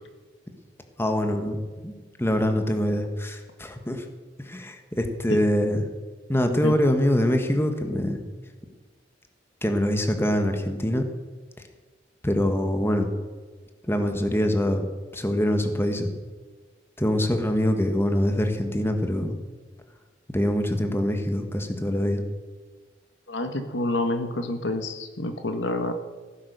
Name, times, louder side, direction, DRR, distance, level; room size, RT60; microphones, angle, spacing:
voice 1, 1.0-4.0 4.4-5.9 6.3-8.2 9.6-11.0 12.2-13.1 13.9-14.9 15.1-16.1 17.0-19.3 20.3-22.2, equal, 15° left, 6 dB, 1.4 m, -24 dB
voice 2, 23.3-25.9, left 2 dB, 85° left, 8 dB, 1.5 m, -28 dB
16.0 x 9.3 x 6.7 m, 1.4 s
head